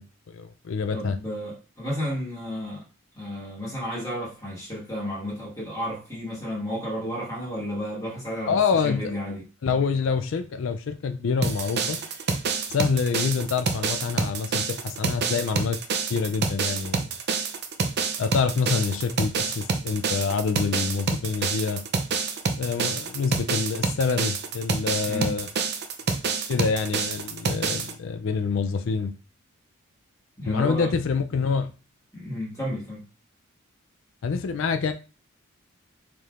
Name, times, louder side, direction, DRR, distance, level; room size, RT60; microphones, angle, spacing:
voice 1, 0.0-1.2 8.5-9.1 9.6-12.0 12.7-15.8 16.1-17.0 18.2-21.8 22.6-25.5 26.5-29.2 30.4-31.7 34.2-34.9, left 5 dB, 65° left, 0.4 m, -26 dB
voice 2, 0.9-2.8 3.1-9.4 25.0-25.3 30.4-30.9 32.1-33.0, equal, 15° left, 1.5 m, -32 dB
sound 1, 11.4-27.9, right 5 dB, 50° right, 0.5 m, -28 dB
4.5 x 3.4 x 2.4 m
head